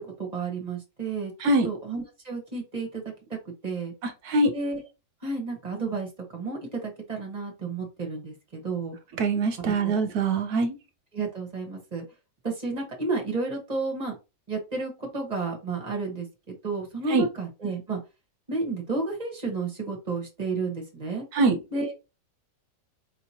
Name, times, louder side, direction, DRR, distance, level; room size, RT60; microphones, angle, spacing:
voice 1, 0.0-1.3 1.6-3.0 3.3-3.4 3.6-3.9 4.5-4.8 5.2-9.0 9.6-10.1 11.1-12.0 12.4-14.1 14.5-16.3 16.6-18.0 18.5-21.2 21.7-21.9, right 3 dB, 25° right, 1 dB, 1.0 m, -31 dB
voice 2, 1.4-1.7 4.0-4.5 9.2-10.8 17.1-17.3 21.3-21.6, right 3 dB, 70° right, 7 dB, 1.1 m, -23 dB
4.9 x 2.9 x 2.8 m, 0.27 s
omnidirectional pair, 1.9 m